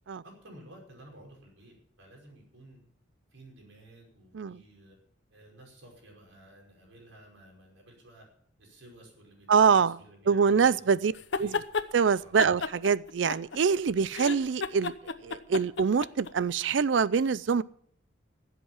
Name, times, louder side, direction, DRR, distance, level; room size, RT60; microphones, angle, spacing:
voice 1, 0.2-2.8 3.3-5.0 5.3-8.3 8.6-11.0 11.4-11.5 12.2-12.4, right 1 dB, 90° right, 5.4 m, -53 dB
voice 2, 9.5-10.0 10.3-11.1 11.4-11.6 11.9-14.9 15.2-17.6, right 6 dB, 70° right, 0.4 m, -24 dB
sound 1, 11.1-11.9 12.4-13.8 14.1-16.3, left 5 dB, 70° left, 0.9 m, -33 dB
15.5 x 8.1 x 7.2 m
head